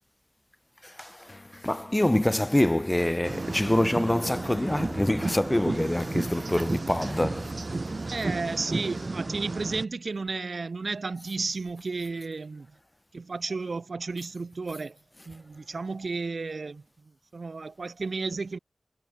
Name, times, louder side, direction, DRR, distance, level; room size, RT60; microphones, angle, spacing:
voice 1, 0.8-7.6, left 1 dB, 15° left, 1.0 m, -26 dB
sound 1, 1.3-9.8, left 2 dB, 35° left, 3.6 m, -49 dB
sound 2, 2.5-9.7, left 4 dB, 80° left, 7.3 m, -54 dB
sound 3, 3.2-9.8, right 3 dB, 50° right, 2.8 m, -33 dB
voice 2, 8.1-12.8 13.1-15.0 15.3-18.6, right 4 dB, 65° right, 2.7 m, -33 dB
wide cardioid pair, 65°, 0 cm